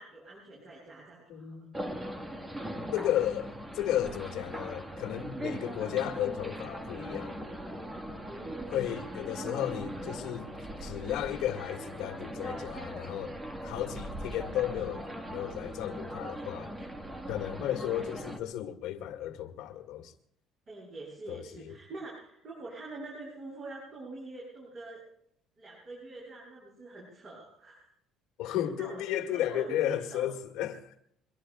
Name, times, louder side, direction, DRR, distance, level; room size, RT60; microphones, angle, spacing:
voice 1, 0.0-1.7 8.3-8.9 20.7-25.0 25.6-27.9 28.4-30.3, right 2 dB, 35° right, 8.0 m, -45 dB
voice 2, 1.3-1.7 2.9-7.4 8.7-10.5 10.8-13.3 13.6-16.7 17.3-20.1 21.3-21.8 28.4-31.0, left 11 dB, 80° left, 1.8 m, -34 dB
sound 1, 1.7-18.4, right 1 dB, 10° right, 1.4 m, -40 dB
24.0 x 23.5 x 2.3 m
cardioid pair, 175°, 0 cm